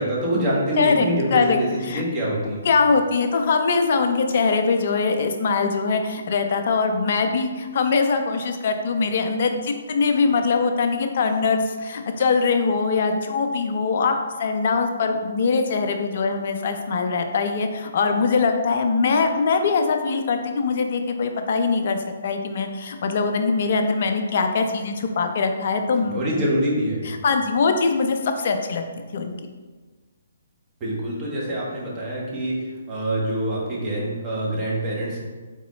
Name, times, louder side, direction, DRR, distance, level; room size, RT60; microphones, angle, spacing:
voice 1, 0.0-2.7 26.0-27.0 30.8-35.2, right 1 dB, 25° right, -5 dB, 1.3 m, -25 dB
voice 2, 0.8-1.6 1.8-2.0 2.6-26.4 27.0-28.8 29.1-29.3, left 4 dB, 50° left, 6 dB, 0.5 m, -22 dB
3.8 x 3.7 x 3.1 m, 1.3 s
figure-of-eight pair, 135°, 0 cm